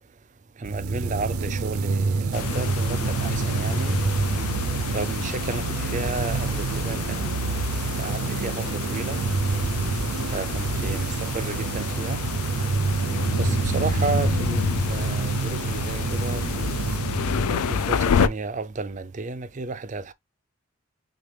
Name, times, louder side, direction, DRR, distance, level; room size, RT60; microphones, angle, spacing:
voice 1, 0.6-4.0 4.9-9.2 10.3-12.2 13.4-16.8 17.2-20.1, right 3 dB, 35° right, 0.4 m, -33 dB
sound 1, 0.6-18.2, right 4 dB, 85° right, 0.6 m, -27 dB
sound 2, 2.3-18.3, left 6 dB, 90° left, 0.4 m, -30 dB
6.2 x 2.3 x 3.2 m
head